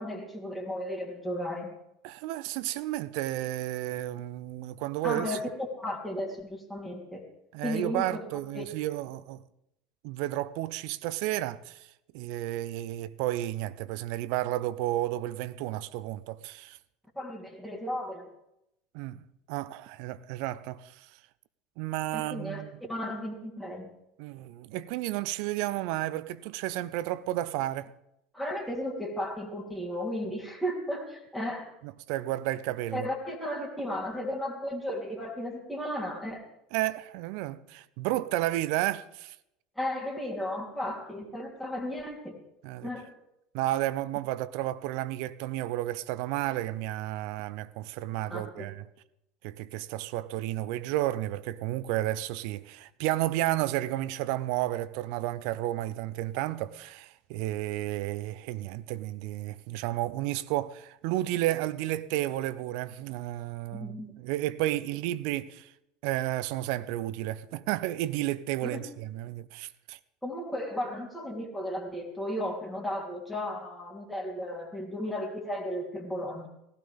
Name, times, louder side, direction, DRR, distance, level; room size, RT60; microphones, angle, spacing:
voice 1, 0.0-1.7 5.0-5.5 5.8-7.2 7.6-8.2 8.5-8.6 17.1-18.3 22.1-23.9 28.3-31.7 32.9-36.5 39.7-42.4 42.8-43.1 48.3-48.6 63.7-64.1 68.6-68.8 70.2-76.5, left 1 dB, ahead, 3.3 m, -34 dB
voice 2, 2.0-5.4 7.5-9.4 10.0-11.9 12.1-16.8 18.9-21.1 21.8-22.7 24.2-27.9 31.8-33.1 36.7-39.4 42.6-42.9 43.5-48.8 49.4-65.7 66.0-70.0, right 15 dB, 60° right, 0.6 m, -32 dB
18.0 x 15.5 x 3.6 m
figure-of-eight pair, 70°, 0 cm